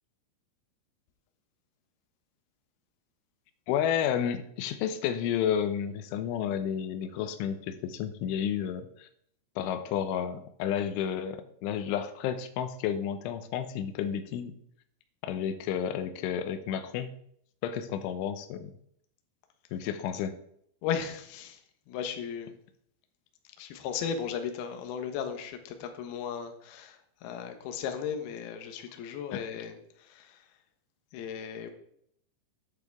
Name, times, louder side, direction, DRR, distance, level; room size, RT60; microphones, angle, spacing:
voice 1, 3.7-9.1 9.6-14.6 15.2-17.1 17.6-18.7 19.7-20.4 29.3-29.4, left 9 dB, 90° left, 10 dB, 3.2 m, -31 dB
voice 2, 20.8-21.6 21.9-22.6 23.6-30.5 31.1-31.7, left 7 dB, 70° left, 6 dB, 2.7 m, -36 dB
12.0 x 8.9 x 3.6 m, 0.68 s
omnidirectional pair, 5.4 m